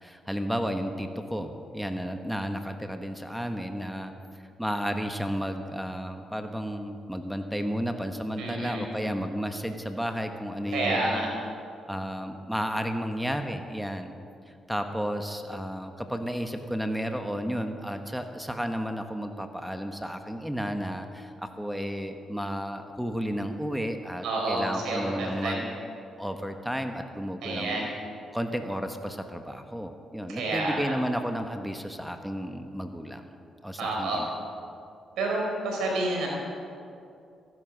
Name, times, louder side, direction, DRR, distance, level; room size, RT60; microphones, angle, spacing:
voice 1, 0.0-4.1 4.6-11.3 11.9-14.1 14.5-25.7 26.2-27.9 28.3-33.2 33.6-34.3, equal, ahead, 6 dB, 1.3 m, -32 dB
voice 2, 8.4-8.8 10.7-11.3 24.2-25.6 27.4-27.9 30.3-30.9 33.8-34.2 35.2-36.3, right 2 dB, 80° right, -1 dB, 4.2 m, -29 dB
14.5 x 11.0 x 6.2 m, 2.5 s
supercardioid pair, 65°, 0 cm